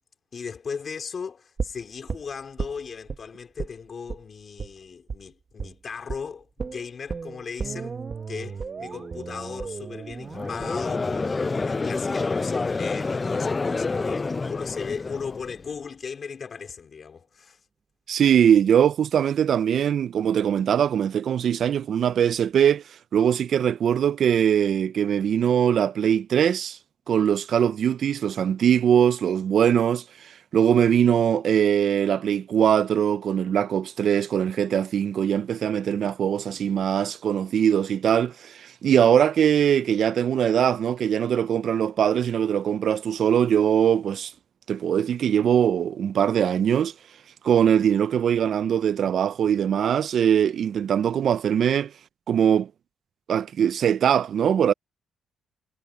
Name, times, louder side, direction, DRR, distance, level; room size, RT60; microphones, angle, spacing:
voice 1, 0.3-8.0 8.3-17.6, left 6 dB, 45° left, 3.5 m, -37 dB
sound 1, 1.6-3.2 3.6-3.8 4.1-4.2 4.6-4.7 5.1-5.2 5.6-5.8 6.1-6.2 6.6-12.6 12.9-13.0, right 5 dB, 40° right, 1.1 m, -35 dB
Conversation / Crowd, 10.3-15.6, left 3 dB, 25° left, 0.5 m, -28 dB
voice 2, 18.1-22.8 23.1-26.8 27.1-44.3 44.7-46.9 47.4-51.9 52.3-52.7 53.3-54.7, right 9 dB, 60° right, 0.4 m, -21 dB
cardioid pair, 90°, 0 cm